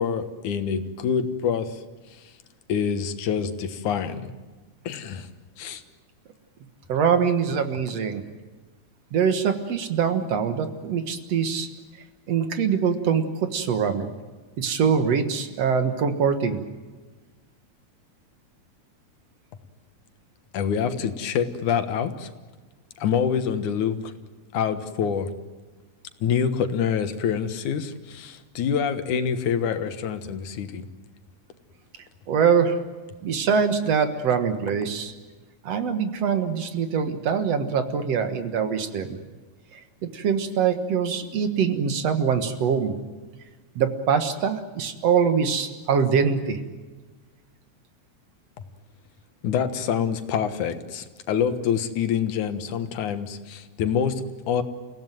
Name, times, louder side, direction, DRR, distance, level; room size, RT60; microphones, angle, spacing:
voice 1, 0.0-1.8 2.1-2.2 2.7-4.3 4.8-5.3 5.6-5.8 20.5-22.3 23.0-24.1 24.5-25.3 26.2-30.9 49.4-54.6, left 7 dB, 80° left, 10 dB, 2.8 m, -26 dB
voice 2, 6.9-8.2 9.1-11.7 12.3-14.1 14.6-16.6 32.3-32.8 33.2-35.1 35.6-39.2 39.7-42.9 43.8-46.6, right 6 dB, 60° right, 8 dB, 2.5 m, -23 dB
29.5 x 17.0 x 9.2 m, 1.3 s
omnidirectional pair, 3.5 m